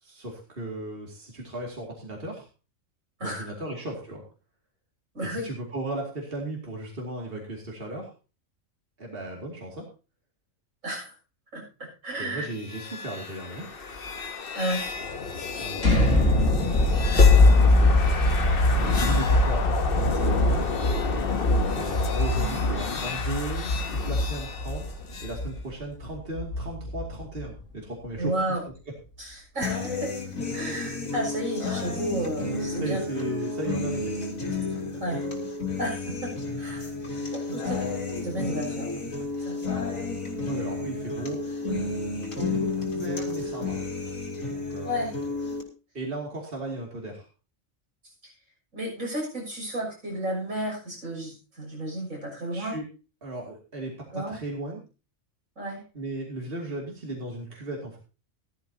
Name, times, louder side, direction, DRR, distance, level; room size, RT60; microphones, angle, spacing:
voice 1, 0.0-2.5 3.2-4.2 5.2-8.1 9.0-9.9 12.2-13.7 15.6-16.6 16.9-20.7 21.7-28.6 32.8-34.1 37.5-37.9 40.5-41.5 42.4-43.8 44.5-45.1 45.9-47.3 52.5-52.8 53.2-54.8 55.9-58.0, right 1 dB, 45° right, -1 dB, 2.7 m, -36 dB
voice 2, 5.1-5.5 10.8-11.2 11.5-12.5 14.6-14.9 22.3-22.5 28.2-28.6 29.2-30.1 30.5-33.0 35.0-35.3 35.8-36.3 36.6-36.9 37.3-37.8 38.2-39.0 39.4-39.6 42.4-42.6 44.8-45.1 48.7-52.7 54.1-54.4 55.6-55.8, right 1 dB, 85° right, -1 dB, 7.1 m, -32 dB
sound 1, 12.5-25.3, left 4 dB, 45° left, 1.3 m, -25 dB
sound 2, 15.8-27.6, left 1 dB, 70° left, 2.9 m, -25 dB
sound 3, 29.6-45.6, left 3 dB, 85° left, 3.1 m, -31 dB
15.5 x 13.0 x 2.8 m, 0.33 s
omnidirectional pair, 1.4 m